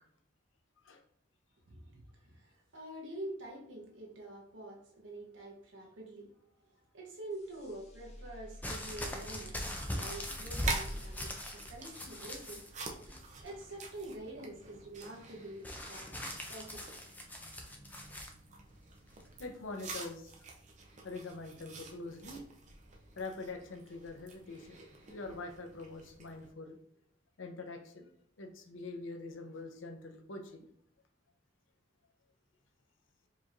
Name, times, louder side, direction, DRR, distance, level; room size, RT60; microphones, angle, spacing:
voice 1, 1.7-12.7 13.0-16.2 16.4-17.0, right 1 dB, 75° right, -1 dB, 1.0 m, -47 dB
sound 1, 7.3-12.6, equal, 35° left, 0.8 m, -51 dB
sound 2, 8.6-12.7 13.0-13.6 15.6-18.3 19.2-19.3, left 1 dB, 10° left, 0.4 m, -40 dB
sound 3, 9.2-26.5, right 3 dB, 40° right, 0.6 m, -47 dB
voice 2, 19.4-20.3 21.0-22.4 23.2-24.8 25.1-26.8 27.4-28.1 28.4-30.7, left 3 dB, 80° left, 5 dB, 0.6 m, -44 dB
4.6 x 3.0 x 2.5 m, 0.69 s
head